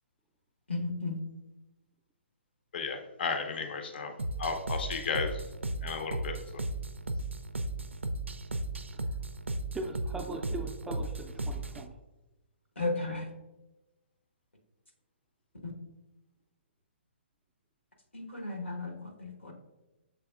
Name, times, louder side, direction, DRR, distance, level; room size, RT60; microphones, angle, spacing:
voice 1, 0.7-1.2 12.8-13.2 15.6-15.7 18.1-19.5, left 2 dB, 85° left, 2 dB, 1.0 m, -34 dB
voice 2, 2.7-5.4 5.8-6.6, left 5 dB, 55° left, 6 dB, 0.5 m, -34 dB
sound 1, 4.2-11.9, right 2 dB, 90° right, 0.3 m, -35 dB
voice 3, 9.7-12.0, right 2 dB, 5° right, 3 dB, 0.3 m, -40 dB
6.7 x 3.4 x 2.3 m, 1.0 s
figure-of-eight pair, 130°, 6 cm